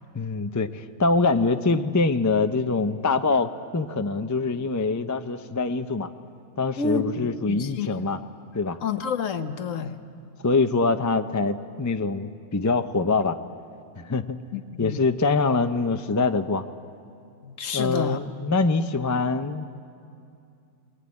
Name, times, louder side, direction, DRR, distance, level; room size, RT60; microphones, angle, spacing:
voice 1, 0.1-6.1 6.6-8.2 8.5-8.8 10.4-13.4 14.0-14.4 14.8-16.6 17.7-19.8, left 3 dB, 25° left, 8 dB, 0.3 m, -24 dB
voice 2, 6.8-8.1 8.8-10.0 14.5-15.0 17.4-18.2, left 5 dB, 65° left, 8 dB, 1.3 m, -29 dB
21.0 x 21.0 x 9.7 m, 2.5 s
omnidirectional pair, 1.5 m